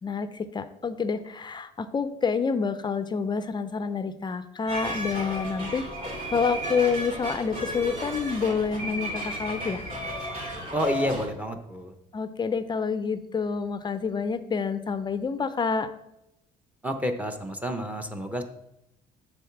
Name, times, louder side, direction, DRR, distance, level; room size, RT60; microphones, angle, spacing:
voice 1, 0.0-5.8 6.3-9.9 12.1-15.9, left 5 dB, 25° left, 11 dB, 0.4 m, -28 dB
sound 1, 4.7-11.3, equal, 40° right, 2.4 m, -34 dB
voice 2, 10.7-11.9 16.8-18.4, equal, 10° right, 7 dB, 0.7 m, -29 dB
7.0 x 3.9 x 5.8 m, 0.87 s
cardioid pair, 110°, 17 cm